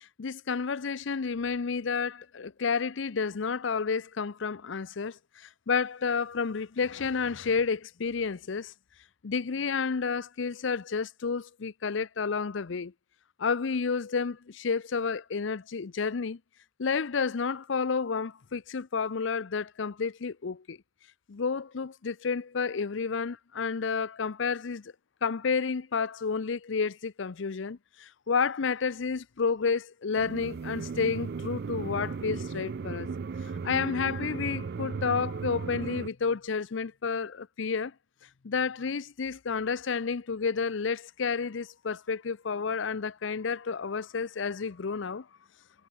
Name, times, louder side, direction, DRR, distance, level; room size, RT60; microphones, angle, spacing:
voice 1, 0.2-8.7 9.2-12.9 13.4-16.4 16.8-20.8 21.3-24.9 25.2-33.1 33.6-37.9 38.4-45.3, left 5 dB, 65° left, 0.6 m, -30 dB
sound 1, 30.2-36.1, right 5 dB, 55° right, 0.4 m, -36 dB
head